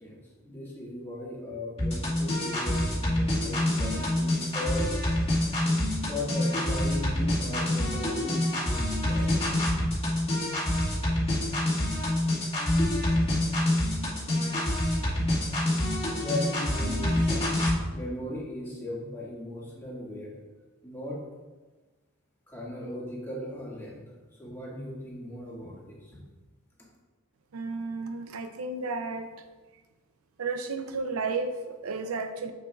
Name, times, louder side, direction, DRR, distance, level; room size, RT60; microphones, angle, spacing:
voice 1, 0.0-4.9 6.1-9.3 16.1-17.5 17.8-20.3 20.8-21.2 22.5-24.0 24.4-26.2, left 1 dB, 10° left, -6 dB, 1.9 m, -37 dB
sound 1, 1.8-17.8, left 1 dB, 30° left, 1.8 m, -27 dB
voice 2, 27.5-29.3 30.4-32.5, right 3 dB, 85° right, 8 dB, 0.5 m, -32 dB
7.4 x 6.8 x 2.4 m, 1.2 s
head